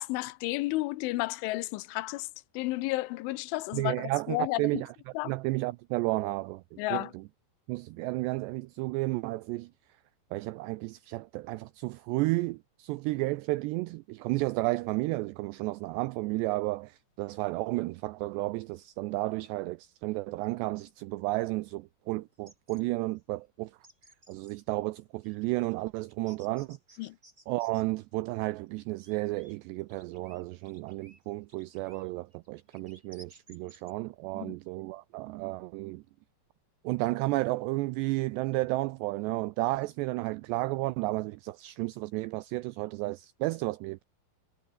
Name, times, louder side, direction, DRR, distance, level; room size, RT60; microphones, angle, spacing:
voice 1, 0.0-2.3 2.5-4.8 5.2-5.3 6.8-7.1 27.0-27.2 34.4-34.6, left 19 dB, 85° left, 3.2 m, -32 dB
voice 2, 3.7-4.9 5.3-7.2 7.7-9.7 10.3-23.7 24.3-26.8 27.5-36.0 36.8-44.0, right 20 dB, 90° right, 2.4 m, -32 dB
sound 1, 22.3-22.8 23.2-23.3 23.7-24.6 25.2-27.8 28.4-29.5 29.8-33.9, right 1 dB, 10° right, 7.7 m, -59 dB
omnidirectional pair, 5.6 m